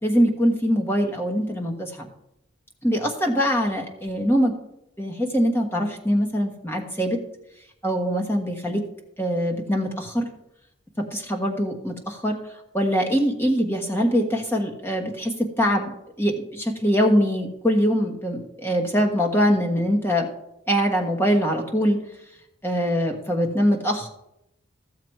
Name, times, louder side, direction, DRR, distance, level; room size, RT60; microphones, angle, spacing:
voice 1, 0.0-2.1 2.8-4.5 5.0-7.2 7.8-8.8 9.2-10.3 11.0-12.4 12.7-20.3 20.7-22.0 22.6-24.1, equal, 10° left, 1 dB, 1.3 m, -23 dB
14.0 x 7.1 x 4.7 m, 0.83 s
head